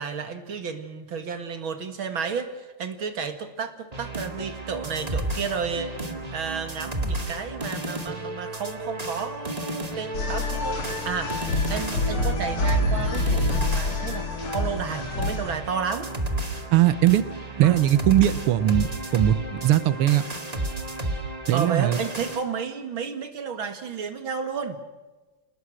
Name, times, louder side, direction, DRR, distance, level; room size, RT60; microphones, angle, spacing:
voice 1, 0.0-5.9 6.3-14.3 14.5-16.1 17.6-17.8 21.5-24.8, right 6 dB, 65° right, 8 dB, 2.6 m, -32 dB
sound 1, 3.9-22.4, right 1 dB, 20° right, 1.9 m, -32 dB
sound 2, 10.1-15.5, left 2 dB, 75° left, 4.0 m, -27 dB
voice 2, 16.7-17.3 17.6-20.2 21.5-22.0, right 13 dB, 90° right, 14 dB, 1.9 m, -20 dB
28.5 x 19.0 x 6.4 m, 1.2 s
omnidirectional pair, 2.4 m